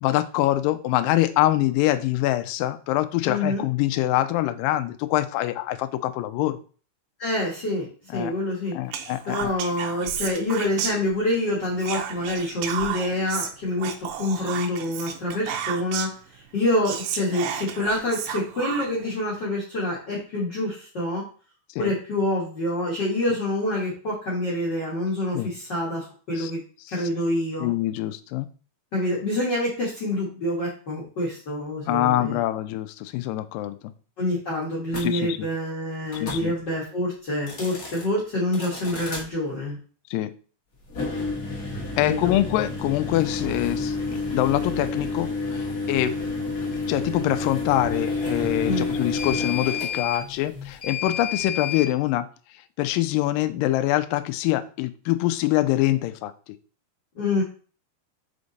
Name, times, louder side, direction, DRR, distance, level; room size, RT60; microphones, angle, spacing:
voice 1, 0.0-6.6 8.1-8.3 8.7-9.5 21.8-21.9 25.3-25.5 26.4-26.5 27.6-28.5 31.9-33.8 35.0-35.5 36.2-36.6 40.1-40.3 42.0-44.0 44.3-46.1 46.9-52.3 52.8-56.3, left 15 dB, 85° left, 10 dB, 2.0 m, -24 dB
voice 2, 3.2-3.6 7.2-7.8 8.1-8.7 9.3-21.2 21.8-26.6 26.9-27.7 28.9-32.4 34.2-39.8 42.0-42.4 48.6-48.8 57.2-57.4, left 1 dB, 50° left, -5 dB, 1.3 m, -26 dB
Whispering, 8.9-11.4 11.8-16.2 16.6-16.7 16.9-19.1, right 8 dB, 90° right, 1.8 m, -32 dB
sound 1, 34.9-35.1 36.1-36.4 37.3-38.0 38.5-39.2 40.8-51.9, left 3 dB, 65° left, 0.8 m, -30 dB
5.2 x 4.9 x 4.0 m, 0.39 s
omnidirectional pair, 4.6 m